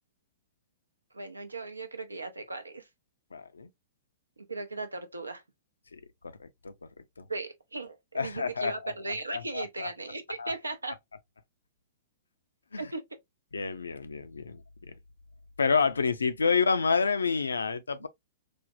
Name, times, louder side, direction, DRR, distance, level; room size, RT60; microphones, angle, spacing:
voice 1, 1.1-2.9 4.5-5.4 7.3-10.9 12.8-13.0, right 3 dB, 85° right, 0.6 m, -37 dB
voice 2, 3.3-3.7 5.9-6.0 6.4-6.7 7.2-7.3 8.1-8.9 9.3-9.9 10.4-10.5 12.7-12.9 13.5-14.6 14.9-15.0 15.6-18.1, left 5 dB, 80° left, 0.4 m, -28 dB
3.3 x 2.1 x 2.5 m
figure-of-eight pair, 105°, 0 cm